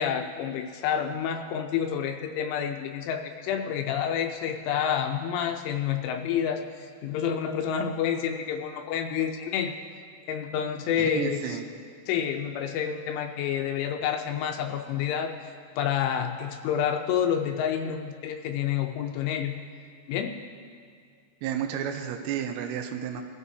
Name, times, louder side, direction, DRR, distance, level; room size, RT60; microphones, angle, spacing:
voice 1, 0.0-9.7 10.3-11.6 12.1-15.3 15.8-19.6 20.1-20.4, left 8 dB, 80° left, 4 dB, 3.0 m, -29 dB
voice 2, 11.0-11.7 21.4-23.2, right 9 dB, 80° right, 4 dB, 2.5 m, -31 dB
24.0 x 13.5 x 2.8 m, 2.1 s
omnidirectional pair, 5.9 m